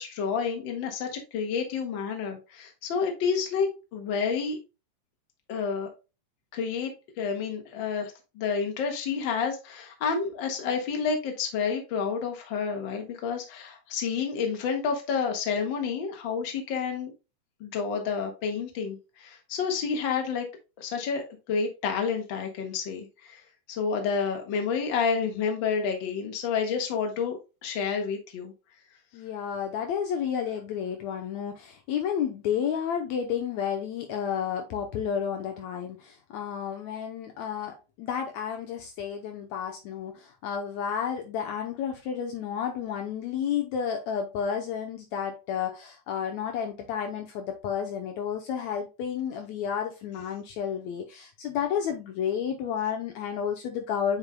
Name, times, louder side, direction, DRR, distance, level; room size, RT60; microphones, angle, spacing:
voice 1, 0.0-4.6 5.5-5.9 6.5-17.1 17.6-20.5 20.8-23.4 23.7-28.5, left 6 dB, 50° left, 3 dB, 1.8 m, -29 dB
voice 2, 29.1-54.2, left 8 dB, 70° left, 4 dB, 2.0 m, -31 dB
8.1 x 5.4 x 2.2 m, 0.28 s
omnidirectional pair, 3.5 m